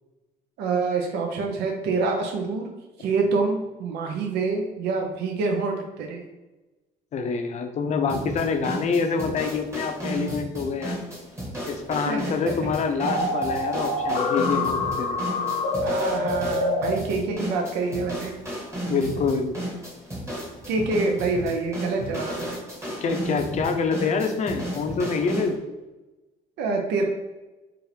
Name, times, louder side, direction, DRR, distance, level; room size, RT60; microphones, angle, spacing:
voice 1, 0.6-2.7 3.0-6.2 12.1-12.3 15.8-18.3 20.7-22.6 26.6-27.0, right 4 dB, 80° right, 2 dB, 0.6 m, -26 dB
voice 2, 7.1-11.0 11.7-15.2 18.9-19.6 23.0-25.6, left 5 dB, 45° left, 6 dB, 0.6 m, -26 dB
sound 1, 8.1-25.6, equal, 15° right, 1.1 m, -34 dB
sound 2, 13.0-16.9, left 2 dB, 70° left, 0.9 m, -26 dB
4.8 x 2.5 x 3.2 m, 1.1 s
cardioid pair, 110°, 17 cm